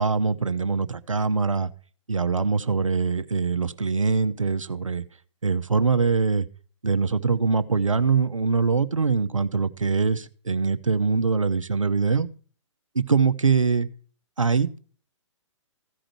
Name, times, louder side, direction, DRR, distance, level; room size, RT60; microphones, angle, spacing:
voice 1, 0.0-1.7 2.1-5.0 5.4-6.5 6.8-12.3 12.9-13.9 14.4-14.8, right 4 dB, 80° right, 11 dB, 0.9 m, -23 dB
15.0 x 5.1 x 5.9 m, 0.42 s
figure-of-eight pair, 125°, 16 cm